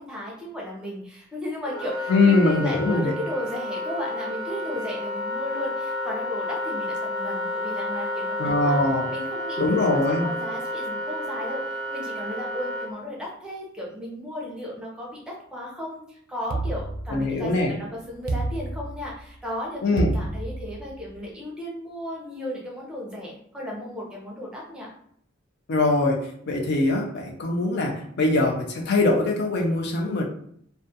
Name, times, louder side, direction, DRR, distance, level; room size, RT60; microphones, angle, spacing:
voice 1, 0.0-8.3 8.6-8.8 9.1-15.2 15.5-24.9, left 1 dB, 5° right, -4 dB, 0.6 m, -35 dB
Wind instrument woodwind instrument, 1.6-12.9, left 1 dB, 25° left, 0.9 m, -31 dB
voice 2, 2.1-3.1 8.4-9.1 9.6-10.3 17.1-17.8 19.8-20.1 25.7-30.2, left 2 dB, 55° left, 1 dB, 0.4 m, -22 dB
sound 1, 16.5-17.6 18.3-19.3 20.0-21.1, right 2 dB, 45° right, 0.3 m, -29 dB
2.3 x 2.1 x 2.6 m, 0.65 s
head